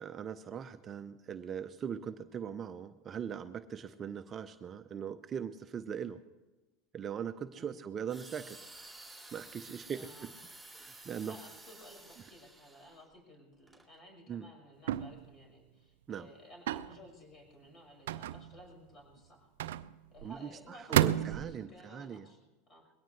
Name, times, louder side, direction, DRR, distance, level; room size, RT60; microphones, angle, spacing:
voice 1, 0.0-6.2 6.9-8.6 9.3-10.3 10.7-11.3 14.3-14.5 16.1-16.3 20.2-22.3, right 7 dB, 35° right, 9 dB, 0.7 m, -40 dB
sound 1, 8.1-13.0 13.7-13.8, right 2 dB, ahead, 3.8 m, -52 dB
voice 2, 9.9-10.3 11.2-19.5 20.1-22.4 22.7-22.8, equal, 35° left, 1 dB, 6.0 m, -55 dB
sound 2, 14.9-15.3 16.7-17.0 18.1-18.7 19.6-20.3 20.9-21.6, right 12 dB, 75° right, 0.4 m, -31 dB
21.0 x 17.5 x 3.2 m, 1.1 s
hypercardioid pair, 95°, 0 cm